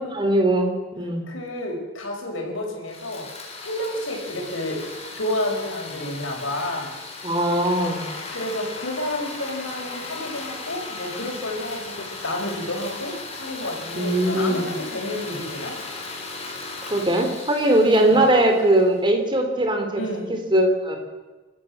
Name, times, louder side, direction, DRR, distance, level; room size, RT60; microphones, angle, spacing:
voice 1, 0.0-1.2 7.2-8.0 13.9-14.7 16.8-20.0 20.3-21.0, right 1 dB, 25° right, 4 dB, 3.3 m, -20 dB
voice 2, 1.3-3.3 3.6-4.8 5.1-6.9 8.3-15.8 18.0-18.2 20.0-20.3, left 1 dB, 80° left, 1 dB, 5.6 m, -30 dB
sound 1, 2.9-19.1, left 3 dB, 30° left, 4.0 m, -37 dB
28.0 x 13.0 x 7.4 m, 1.2 s
head